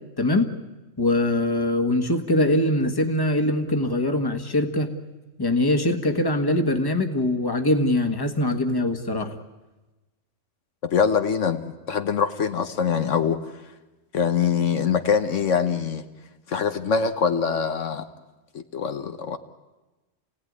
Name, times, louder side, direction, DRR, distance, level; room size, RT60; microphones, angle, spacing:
voice 1, 0.2-0.5 1.0-4.9 5.4-9.4, left 1 dB, 20° left, 6 dB, 1.5 m, -22 dB
voice 2, 10.8-13.4 14.1-16.0 16.5-18.1 18.5-19.4, left 6 dB, 70° left, 8 dB, 1.4 m, -23 dB
28.0 x 17.0 x 9.6 m, 1.1 s
omnidirectional pair, 1.3 m